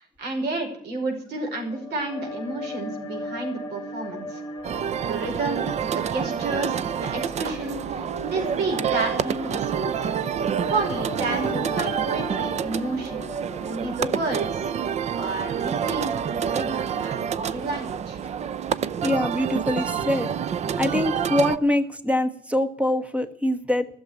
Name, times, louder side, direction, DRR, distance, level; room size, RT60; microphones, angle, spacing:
voice 1, 0.0-4.4 5.0-5.7 5.9-10.0 10.7-13.3 13.6-14.7 15.2-18.2, right 2 dB, 75° right, 3 dB, 5.2 m, -31 dB
sound 1, 1.4-14.8, left 1 dB, 20° left, 3.1 m, -38 dB
sound 2, 4.6-21.6, right 8 dB, 40° right, 0.6 m, -28 dB
voice 2, 19.0-20.3 20.7-23.9, left 1 dB, 5° right, 10 dB, 1.3 m, -24 dB
14.0 x 7.1 x 9.7 m, 0.65 s
cardioid pair, 110°, 17 cm